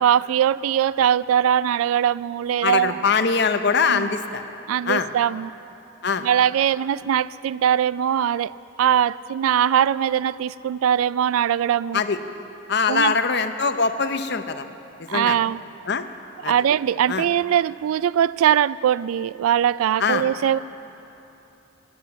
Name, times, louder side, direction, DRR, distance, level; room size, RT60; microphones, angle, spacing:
voice 1, 0.0-3.0 3.9-4.1 4.7-5.5 6.2-8.5 8.8-12.0 12.9-13.1 15.1-15.6 16.5-20.6, right 9 dB, 90° right, 20 dB, 0.3 m, -21 dB
voice 2, 2.6-4.4 4.9-5.1 6.0-6.3 11.9-12.2 12.7-14.6 15.0-15.4 15.9-16.0 16.4-16.5 17.1-17.3 20.0-20.2, left 5 dB, 55° left, 9 dB, 0.7 m, -22 dB
15.5 x 9.6 x 8.3 m, 2.9 s
head